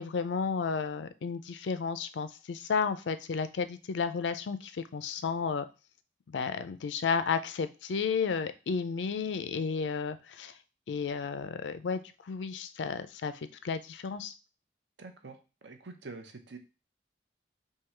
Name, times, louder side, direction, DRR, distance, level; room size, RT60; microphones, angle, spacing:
voice 1, 0.0-5.6 6.3-10.5 10.9-14.3, left 5 dB, 85° left, 11 dB, 0.4 m, -32 dB
voice 2, 15.0-15.4 15.6-16.6, right 3 dB, 80° right, 7 dB, 0.7 m, -45 dB
3.7 x 2.7 x 4.4 m, 0.31 s
head